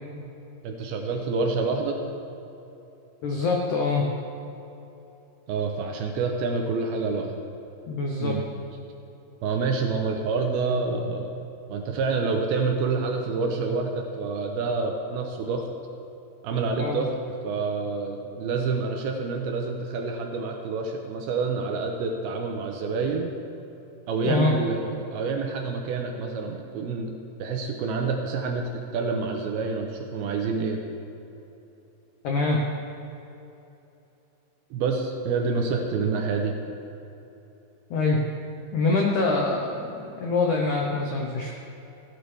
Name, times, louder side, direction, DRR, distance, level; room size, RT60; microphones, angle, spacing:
voice 1, 0.6-2.0 5.5-7.4 8.2-8.4 9.4-11.3 11.7-15.7 16.4-17.1 17.4-23.3 24.1-27.1 27.4-30.8 34.7-36.6, right 4 dB, 80° right, 3 dB, 2.4 m, -27 dB
voice 2, 3.2-4.1 7.9-8.4 16.8-17.0 24.2-24.5 32.2-32.6 37.9-38.2 38.7-41.5, left 3 dB, 85° left, 0 dB, 1.7 m, -24 dB
16.0 x 12.5 x 3.4 m, 3.0 s
omnidirectional pair, 5.0 m